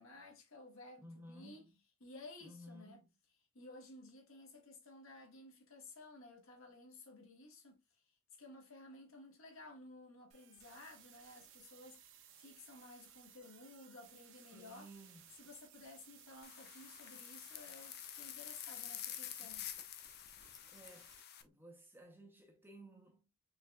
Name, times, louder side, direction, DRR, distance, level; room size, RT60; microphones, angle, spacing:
voice 1, 0.0-1.7 2.0-3.0 3.5-8.0 8.4-14.9 15.4-19.7, left 2 dB, 60° left, 1.3 m, -55 dB
voice 2, 1.0-1.7 2.4-3.0 14.5-15.3 19.4-19.5 20.7-21.1 21.4-23.3, right 1 dB, 10° right, 0.7 m, -56 dB
sound 1, 10.3-21.4, right 8 dB, 55° right, 0.9 m, -61 dB
sound 2, 16.4-21.4, left 11 dB, 45° left, 0.5 m, -48 dB
4.6 x 3.5 x 2.2 m
head